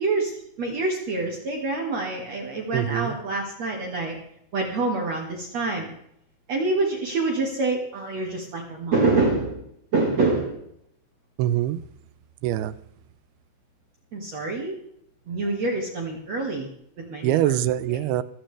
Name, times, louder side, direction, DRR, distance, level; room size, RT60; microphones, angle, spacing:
voice 1, 0.0-4.2 4.5-5.9 6.5-9.6 9.9-10.6 14.1-14.8 15.3-16.7 17.1-17.6 17.9-18.0, right 3 dB, 50° right, 0 dB, 2.5 m, -26 dB
voice 2, 2.7-3.2 11.4-11.8 12.4-12.7 17.2-18.2, right 12 dB, 85° right, 13 dB, 2.6 m, -23 dB
26.5 x 8.9 x 3.4 m, 0.73 s
omnidirectional pair, 4.5 m